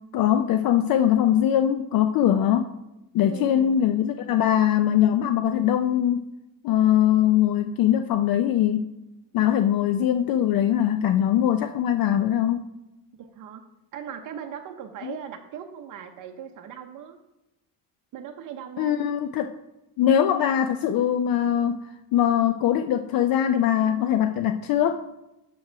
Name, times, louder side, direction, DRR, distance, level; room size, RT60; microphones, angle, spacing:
voice 1, 0.1-2.7 3.1-6.2 6.6-8.8 9.3-12.6 15.0-15.1 18.8-19.5 20.0-21.7 22.1-25.0, left 10 dB, 55° left, 8 dB, 0.5 m, -21 dB
voice 2, 3.3-3.8 13.2-13.6 13.9-17.2 18.1-19.0, right 8 dB, 50° right, 4 dB, 0.7 m, -39 dB
6.4 x 4.7 x 5.6 m, 0.93 s
cardioid pair, 135°, 41 cm